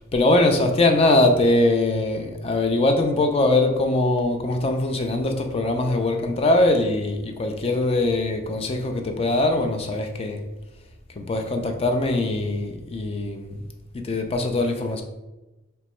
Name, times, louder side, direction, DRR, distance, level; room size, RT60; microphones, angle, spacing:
voice 1, 0.1-10.4 11.1-13.6 13.9-15.0, left 2 dB, 30° left, 4 dB, 0.4 m, -22 dB
3.0 x 2.2 x 4.2 m, 1.0 s
head